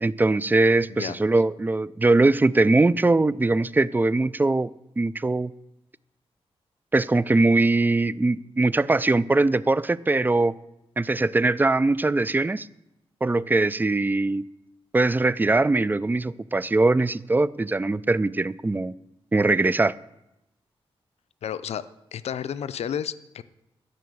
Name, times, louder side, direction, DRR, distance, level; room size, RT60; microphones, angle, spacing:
voice 1, 0.0-4.7 5.0-5.5 6.9-10.6 11.0-12.7 13.2-14.5 14.9-18.9 19.3-19.9, right 2 dB, 20° right, 0.3 m, -21 dB
voice 2, 21.4-21.8 22.1-23.4, left 9 dB, 85° left, 0.5 m, -31 dB
13.0 x 5.6 x 7.8 m
cardioid pair, 90°, 11 cm